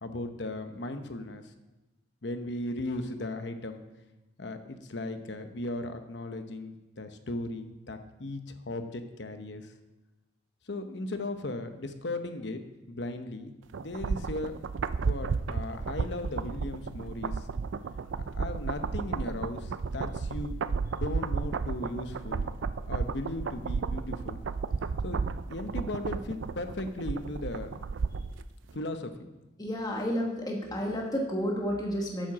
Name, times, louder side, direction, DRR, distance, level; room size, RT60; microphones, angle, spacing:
voice 1, 0.0-1.4 2.2-3.8 4.4-9.7 10.7-12.6 12.9-13.5 13.8-14.6 15.0-17.4 18.3-20.6 20.9-22.5 22.9-24.4 25.0-25.2 25.5-27.7 28.7-29.1, left 2 dB, 65° left, 8 dB, 0.9 m, -37 dB
sound 1, 13.7-28.4 28.7-28.8, right 5 dB, 90° right, 0.4 m, -33 dB
voice 2, 29.6-32.3, equal, 20° left, -1 dB, 1.4 m, -31 dB
8.9 x 7.5 x 6.1 m, 1.0 s
head